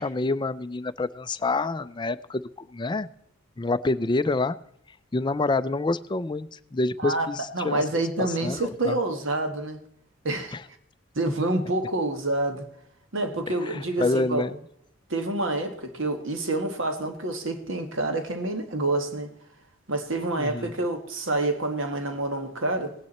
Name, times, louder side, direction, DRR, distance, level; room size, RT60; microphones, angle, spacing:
voice 1, 0.0-3.1 3.6-4.6 5.1-7.8 8.2-9.0 10.5-10.6 13.7-14.6 20.4-20.7, left 3 dB, 20° left, 14 dB, 0.4 m, -27 dB
voice 2, 7.5-9.8 10.2-10.6 11.1-12.7 13.1-14.5 15.1-19.3 19.9-22.9, right 2 dB, 60° right, 6 dB, 1.6 m, -27 dB
19.0 x 9.6 x 4.2 m, 0.76 s
head